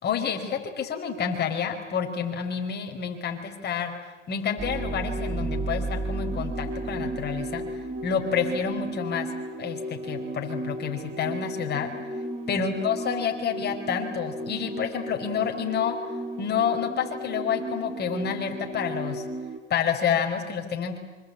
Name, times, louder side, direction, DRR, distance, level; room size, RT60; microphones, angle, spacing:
voice 1, 0.0-3.9 4.3-7.6 8.0-9.3 9.6-11.9 12.5-16.0 16.4-19.2 19.7-21.0, left 7 dB, 25° left, 4 dB, 4.9 m, -29 dB
sound 1, 4.6-19.6, right 1 dB, 15° right, 3.5 m, -33 dB
26.0 x 25.5 x 8.7 m, 1.2 s
hypercardioid pair, 115°, 36 cm